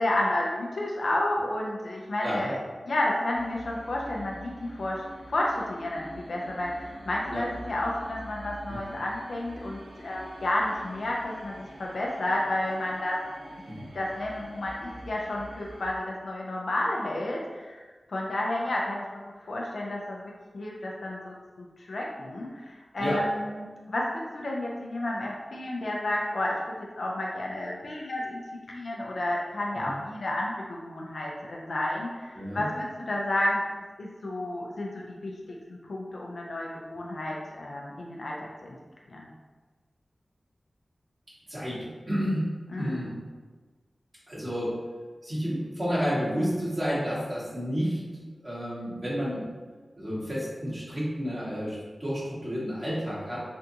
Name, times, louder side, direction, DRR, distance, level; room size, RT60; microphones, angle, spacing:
voice 1, 0.0-2.6 2.9-13.2 13.9-17.8 18.1-28.4 28.7-33.6 34.0-35.3 35.7-38.7 39.1-39.3 42.7-43.1, left 1 dB, 75° left, -3 dB, 0.4 m, -31 dB
voice 2, 2.2-2.6 7.3-7.4 8.7-8.8 13.7-13.8 23.0-23.2 29.8-29.9 32.3-32.6 41.5-42.5 42.8-43.1 44.3-44.7 45.2-48.0 48.4-49.4 50.0-53.4, equal, 40° right, -9 dB, 1.4 m, -30 dB
sound 1, 3.3-15.9, right 1 dB, 80° right, 0.7 m, -46 dB
3.4 x 2.6 x 2.7 m, 1.4 s
wide cardioid pair, 55°, 0 cm